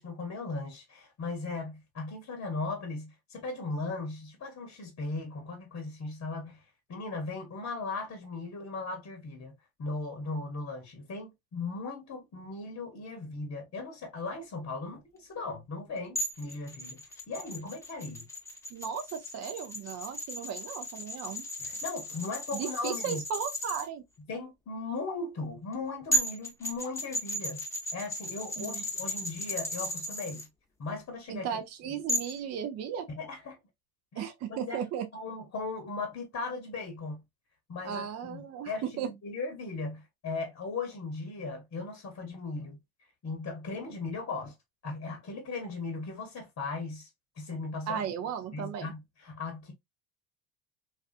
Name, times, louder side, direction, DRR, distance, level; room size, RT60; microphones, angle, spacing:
voice 1, 0.0-6.6 6.9-9.5 9.8-17.0 17.3-18.3 21.6-23.2 24.3-27.6 27.9-30.5 30.8-31.6 33.2-33.6 34.1-34.8 35.1-37.2 37.7-42.8 43.2-44.5 44.8-47.1 47.4-48.0 48.5-49.7, left 3 dB, 35° left, 0.9 m, -37 dB
sound 1, 16.2-23.9 25.7-25.8 26.1-30.5 32.1-32.4, equal, 5° left, 0.8 m, -35 dB
voice 2, 18.7-21.4 22.5-24.0 28.6-28.8 31.3-33.1 34.2-35.1 37.8-39.1 47.9-48.9, right 8 dB, 40° right, 0.5 m, -36 dB
2.4 x 2.4 x 2.4 m
hypercardioid pair, 80°, 42 cm